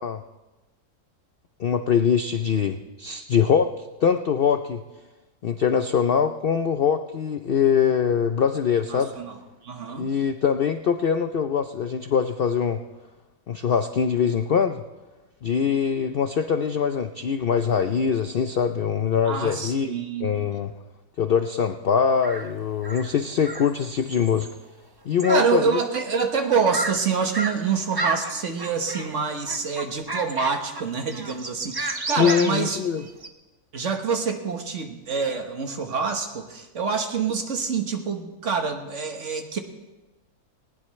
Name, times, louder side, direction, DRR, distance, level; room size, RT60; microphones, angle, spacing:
voice 1, 1.6-3.7 4.0-4.8 5.4-9.1 10.0-12.8 13.5-14.8 15.4-19.9 20.2-20.7 21.2-24.5 25.1-25.8 32.2-33.0, left 7 dB, 60° left, 8 dB, 0.6 m, -23 dB
voice 2, 8.9-9.3 9.6-10.1 19.3-20.3 25.3-32.8 33.7-39.6, right 5 dB, 50° right, 5 dB, 1.6 m, -26 dB
sound 1, 22.2-22.5 22.8-24.5 25.2-25.5 25.8-25.9 26.4-26.9 27.3-27.6 27.9-29.2 29.5-30.8 31.1-33.3, right 2 dB, 25° right, 0.5 m, -32 dB
19.5 x 18.5 x 3.2 m, 1.1 s
omnidirectional pair, 1.6 m